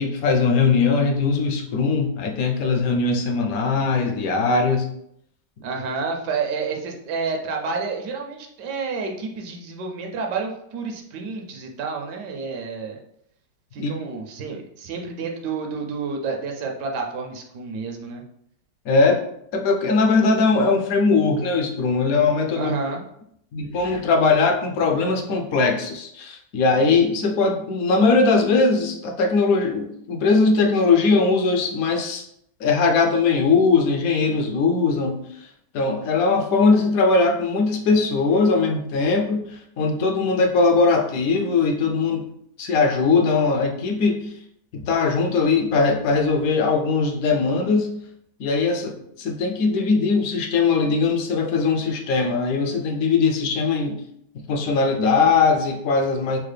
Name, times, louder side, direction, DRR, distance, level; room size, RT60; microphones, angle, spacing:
voice 1, 0.0-4.9 13.8-13.9 18.9-19.2 19.5-22.7 23.5-32.2 32.6-35.2 35.7-42.3 42.6-44.3 44.7-47.9 48.4-54.0 54.5-56.4, left 4 dB, 70° left, 3 dB, 0.9 m, -20 dB
voice 2, 5.6-13.0 13.7-18.2 22.5-23.0, right 4 dB, 80° right, 2 dB, 1.2 m, -29 dB
4.5 x 2.1 x 3.3 m, 0.72 s
omnidirectional pair, 1.8 m